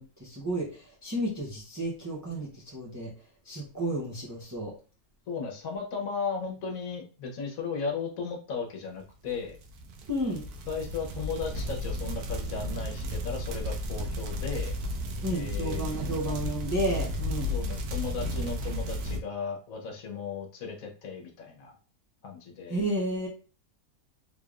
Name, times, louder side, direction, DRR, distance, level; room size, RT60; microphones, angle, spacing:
voice 1, 0.0-3.1 3.4-4.7 10.1-10.5 15.2-17.5 22.7-23.3, right 1 dB, 20° right, -3 dB, 0.5 m, -32 dB
voice 2, 5.3-9.6 10.7-14.8 15.3-15.9 17.5-21.8 22.2-22.8, left 5 dB, 65° left, 1 dB, 1.3 m, -36 dB
sound 1, 9.4-19.2, left 1 dB, 85° right, 1.2 m, -33 dB
3.5 x 3.3 x 2.4 m, 0.37 s
omnidirectional pair, 1.6 m